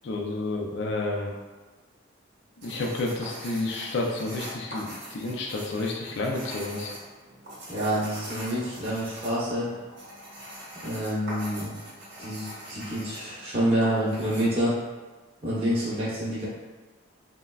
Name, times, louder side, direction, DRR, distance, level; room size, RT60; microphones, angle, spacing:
voice 1, 0.0-1.3 2.6-6.9, left 2 dB, 60° left, -1 dB, 0.4 m, -30 dB
sound 1, 2.6-14.4, equal, 55° right, 0.9 m, -42 dB
voice 2, 7.7-9.7 10.8-11.7 12.2-14.7 15.4-16.5, equal, 30° right, -10 dB, 0.7 m, -27 dB
3.3 x 2.1 x 2.3 m, 1.3 s
head